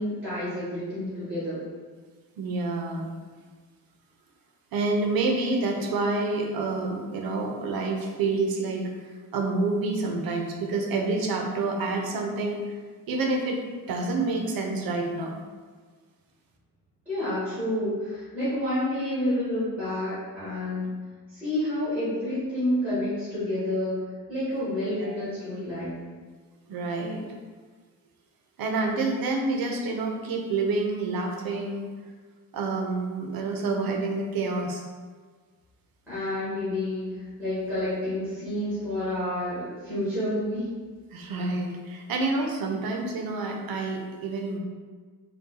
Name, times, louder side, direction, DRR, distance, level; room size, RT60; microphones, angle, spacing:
voice 1, 0.0-1.6 17.0-20.9 21.3-24.0 24.3-26.0 36.1-40.7, left 1 dB, 5° right, -11 dB, 1.4 m, -29 dB
voice 2, 2.4-3.1 4.7-8.9 9.3-12.7 13.1-13.6 13.9-15.4 25.0-25.1 26.7-27.2 28.6-31.9 32.5-34.8 41.1-44.6, right 3 dB, 85° right, 2 dB, 0.7 m, -28 dB
4.1 x 2.3 x 3.7 m, 1.5 s
wide cardioid pair, 175°, 35 cm